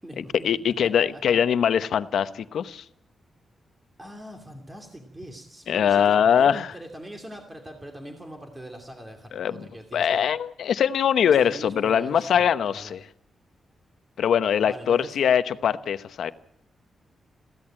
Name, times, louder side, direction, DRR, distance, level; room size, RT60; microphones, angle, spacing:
voice 1, 0.2-2.8 5.7-6.7 9.3-9.6 9.9-13.0 14.2-16.3, left 8 dB, 80° left, 12 dB, 0.9 m, -22 dB
voice 2, 4.0-10.3 11.3-12.9 14.6-15.2, equal, 15° right, 3 dB, 2.6 m, -42 dB
22.5 x 16.0 x 9.0 m, 0.78 s
wide cardioid pair, 140°, 0 cm